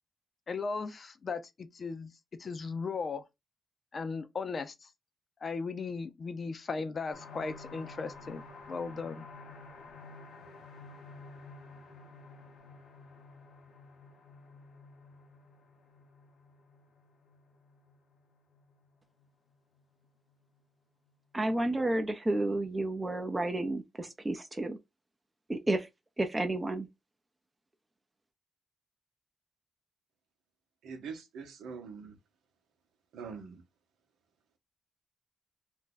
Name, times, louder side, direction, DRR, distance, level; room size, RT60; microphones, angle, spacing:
voice 1, 0.5-2.1 2.4-3.2 3.9-4.9 5.4-9.3, left 4 dB, 50° left, 0.5 m, -37 dB
sound 1, 7.1-20.6 21.1-21.2 21.5-21.6, left 3 dB, 90° left, 0.8 m, -52 dB
voice 2, 21.3-24.8 25.5-25.9 26.2-26.9, right 2 dB, 20° right, 0.6 m, -31 dB
voice 3, 30.8-32.2 33.1-33.6, right 5 dB, 90° right, 0.8 m, -43 dB
2.6 x 2.3 x 3.8 m
cardioid pair, 75°, 0 cm